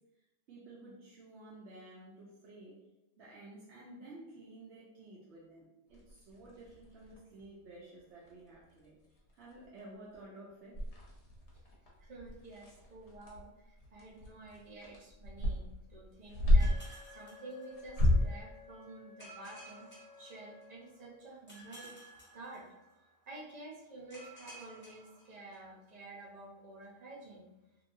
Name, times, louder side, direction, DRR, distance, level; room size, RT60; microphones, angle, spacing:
voice 1, 0.5-2.8 3.2-8.9 9.3-10.8, right 2 dB, 90° right, -6 dB, 1.0 m, -52 dB
sound 1, 5.9-7.4 8.0-8.1 8.3-8.5 8.8-8.9 9.3-9.8 10.1-10.2 10.7-17.0 17.8-18.4, left 1 dB, 85° left, 1.1 m, -31 dB
voice 2, 12.0-19.9 20.2-21.9 22.3-22.6 23.3-27.5, right 2 dB, 45° right, -3 dB, 0.7 m, -50 dB
Wind instrument woodwind instrument, 16.6-21.3, left 7 dB, 65° left, 0.9 m, -57 dB
sound 2, 16.6-18.2 19.2-20.9 21.5-23.1 24.1-25.9, right 2 dB, 10° left, 0.8 m, -54 dB
2.9 x 2.6 x 2.6 m, 0.94 s
omnidirectional pair, 1.1 m